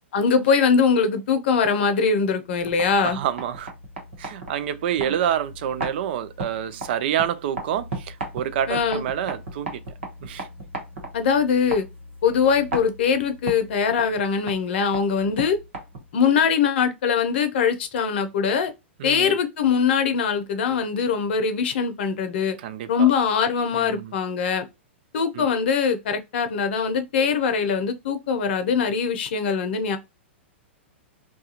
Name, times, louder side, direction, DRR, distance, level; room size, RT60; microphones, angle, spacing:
voice 1, 0.1-3.2 8.7-9.0 11.1-11.9 12.2-15.6 16.1-18.7 19.0-22.6 22.9-24.6 25.1-30.0, left 6 dB, 60° left, 0.6 m, -22 dB
sound 1, 2.5-16.2, right 2 dB, 80° right, 1.1 m, -37 dB
voice 2, 3.0-3.7 4.2-9.8 10.2-10.5 19.0-19.4 22.6-23.1 23.7-24.1 25.4-25.5, right 10 dB, 55° right, 0.4 m, -28 dB
2.4 x 2.3 x 2.8 m
hypercardioid pair, 110°, 7 cm